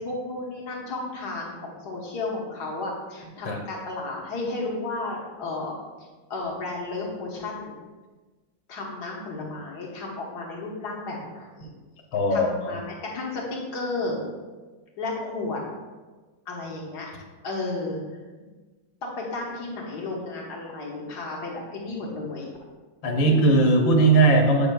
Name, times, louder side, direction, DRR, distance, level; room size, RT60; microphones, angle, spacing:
voice 1, 0.0-5.7 6.3-7.8 8.7-11.7 12.3-14.2 15.0-15.6 16.5-17.1 17.4-18.0 19.0-22.5 23.2-23.4, left 2 dB, 60° left, -2 dB, 1.7 m, -33 dB
voice 2, 12.1-12.8 23.0-24.7, right 2 dB, 85° left, 1 dB, 1.7 m, -19 dB
7.9 x 6.9 x 2.2 m, 1.3 s
omnidirectional pair, 2.1 m